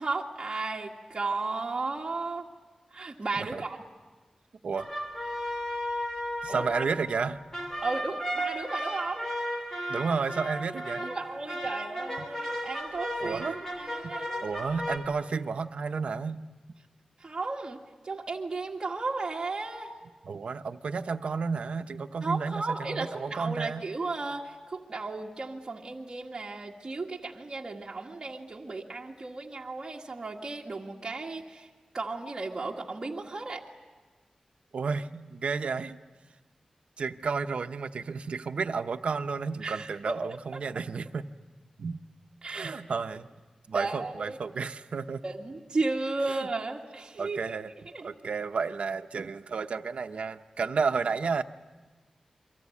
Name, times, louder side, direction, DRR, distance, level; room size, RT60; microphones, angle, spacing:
voice 1, 0.0-2.5 2.9-3.8 6.5-6.7 7.8-9.3 11.0-13.4 13.8-14.4 17.2-17.8 18.0-19.9 22.2-31.7 31.9-33.6 39.6-40.2 40.5-40.6 42.4-42.8 43.7-44.4 45.2-47.6 47.9-48.1, right 3 dB, 35° right, -2 dB, 1.8 m, -34 dB
voice 2, 3.4-3.7 4.6-4.9 6.4-7.4 9.9-11.1 12.2-12.3 13.2-13.6 14.0-14.1 14.4-16.4 20.2-23.8 34.7-36.0 37.0-41.3 41.8-42.0 42.5-43.3 43.7-45.2 46.3-46.4 47.2-47.7 48.0-51.4, right 5 dB, 75° right, 8 dB, 0.9 m, -32 dB
sound 1, 4.8-15.0, equal, 20° left, 3.4 m, -35 dB
29.0 x 24.0 x 8.5 m, 1.3 s
wide cardioid pair, 140°, 2 cm